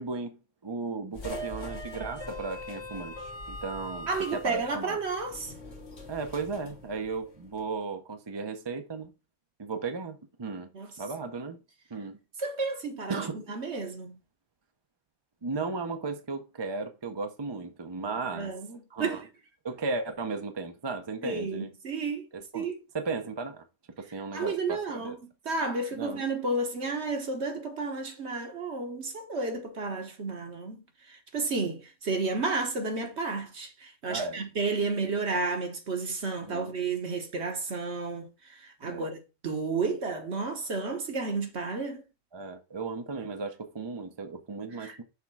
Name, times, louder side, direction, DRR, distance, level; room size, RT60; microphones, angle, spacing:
voice 1, 0.0-5.0 6.1-9.1 9.6-10.7 11.0-11.6 11.9-12.2 13.1-13.4 15.4-18.5 18.9-19.2 19.6-21.7 22.3-23.6 24.0-25.2 25.9-26.2 34.1-34.4 36.4-36.7 38.8-39.1 42.3-45.0, right 4 dB, 25° right, 0.7 m, -35 dB
sound 1, 1.1-7.7, left 1 dB, 60° left, 1.6 m, -42 dB
voice 2, 4.1-5.5 10.7-10.9 12.4-14.2 18.3-19.2 21.2-22.2 22.5-22.8 24.3-25.2 25.4-30.8 31.1-42.0 44.8-45.0, right 3 dB, 60° right, 1.5 m, -32 dB
5.9 x 3.6 x 6.0 m
omnidirectional pair, 1.3 m